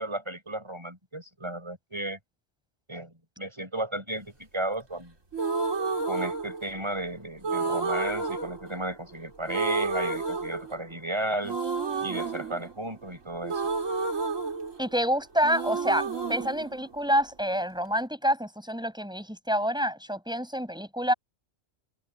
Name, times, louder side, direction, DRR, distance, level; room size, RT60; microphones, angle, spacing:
voice 1, 0.0-2.2 2.9-5.1 6.0-11.6 12.0-13.7, right 1 dB, 20° right, 7.0 m, -34 dB
sound 1, 5.3-7.0 7.4-9.2 9.5-11.1 11.4-15.1 15.4-17.5, right 4 dB, 75° right, 4.1 m, -31 dB
voice 2, 14.8-21.1, equal, 5° right, 7.5 m, -27 dB
omnidirectional pair, 1.3 m